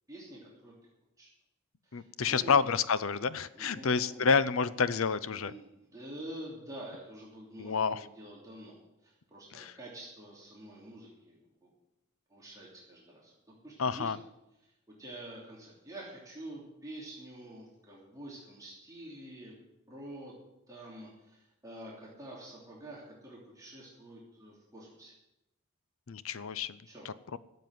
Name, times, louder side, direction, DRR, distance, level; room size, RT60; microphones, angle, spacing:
voice 1, 0.1-0.7 1.2-1.3 1.8-2.6 3.5-4.3 5.3-11.7 12.3-14.1 15.0-19.6 19.9-20.3 20.7-25.1 26.9-27.1, right 1 dB, 15° right, -5 dB, 3.0 m, -47 dB
voice 2, 1.9-5.5 7.6-8.1 9.5-9.7 13.8-14.2 26.1-26.8 27.0-27.4, left 5 dB, 70° left, 16 dB, 0.6 m, -29 dB
13.5 x 7.5 x 9.4 m, 0.90 s
head